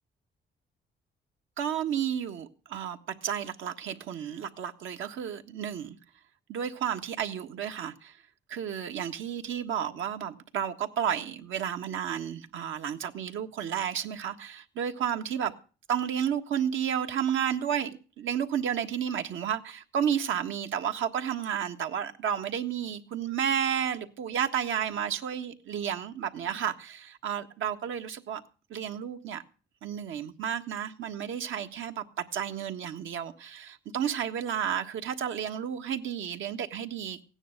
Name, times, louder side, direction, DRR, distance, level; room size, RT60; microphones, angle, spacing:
voice 1, 1.6-6.0 6.5-8.2 8.5-15.5 15.9-28.4 28.7-29.4 29.8-37.2, right 8 dB, 80° right, 1.5 m, -32 dB
16.0 x 9.9 x 6.6 m
cardioid pair, 90°, 20 cm